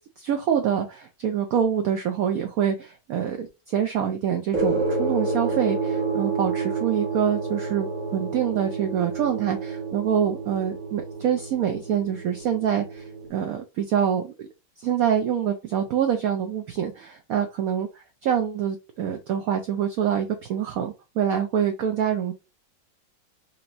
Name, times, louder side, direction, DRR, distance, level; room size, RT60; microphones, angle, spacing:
voice 1, 0.0-14.5 14.8-22.3, right 9 dB, 75° right, 5 dB, 0.8 m, -26 dB
sound 1, 4.5-13.3, right 4 dB, 45° right, 1.4 m, -29 dB
4.4 x 2.9 x 2.5 m, 0.27 s
omnidirectional pair, 2.0 m